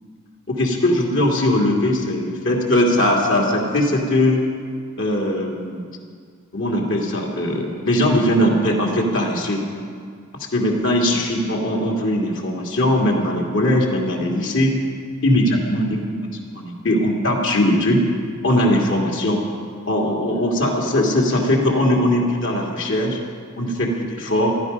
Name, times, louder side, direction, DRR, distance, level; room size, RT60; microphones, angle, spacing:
voice 1, 0.5-4.4 5.0-5.9 6.5-9.6 10.3-14.8 15.2-16.2 16.5-18.0 18.4-19.4 19.9-23.2 23.6-24.5, left 1 dB, 60° left, -1 dB, 2.4 m, -20 dB
15.0 x 12.5 x 5.3 m, 2.1 s
head